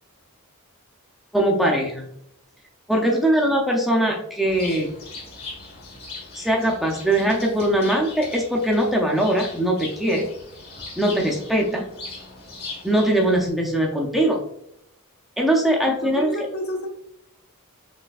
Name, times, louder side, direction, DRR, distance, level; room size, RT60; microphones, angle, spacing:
voice 1, 1.3-2.1 2.9-5.0 6.3-10.3 11.0-11.9 12.8-14.4 15.4-16.3, right 1 dB, ahead, -1 dB, 0.5 m, -21 dB
Bird, 4.5-13.5, left 3 dB, 45° left, 1.3 m, -39 dB
voice 2, 15.8-16.9, equal, 65° left, 2 dB, 0.9 m, -31 dB
4.1 x 3.2 x 2.4 m, 0.76 s
head